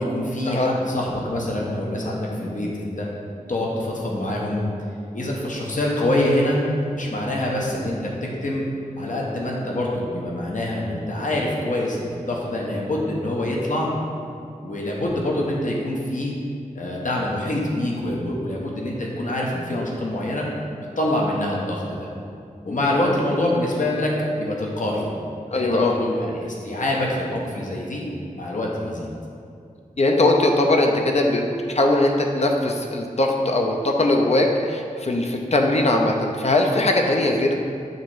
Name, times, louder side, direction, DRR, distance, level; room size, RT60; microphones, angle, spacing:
voice 1, 0.0-3.1 3.5-4.6 5.1-6.6 6.9-8.6 9.0-13.9 14.6-16.3 16.7-20.5 21.0-22.1 22.6-25.1 25.5-28.0 28.3-29.1, left 1 dB, 70° left, -3 dB, 1.1 m, -25 dB
voice 2, 25.5-25.9 30.0-31.4 31.7-37.7, left 2 dB, 50° left, 2 dB, 0.7 m, -20 dB
6.5 x 3.1 x 4.9 m, 2.4 s
cardioid pair, 45°, 14 cm